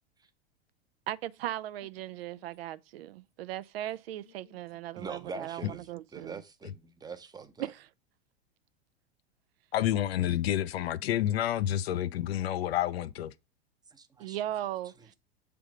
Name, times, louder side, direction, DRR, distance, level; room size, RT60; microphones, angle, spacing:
voice 1, 1.1-6.4 7.6-7.9 14.2-15.1, right 13 dB, 70° right, 0.5 m, -38 dB
voice 2, 5.0-7.7 13.9-14.4, right 4 dB, 15° right, 0.7 m, -43 dB
voice 3, 9.7-13.3, left 12 dB, 75° left, 0.5 m, -29 dB
7.2 x 3.4 x 4.9 m
hypercardioid pair, 100°, 31 cm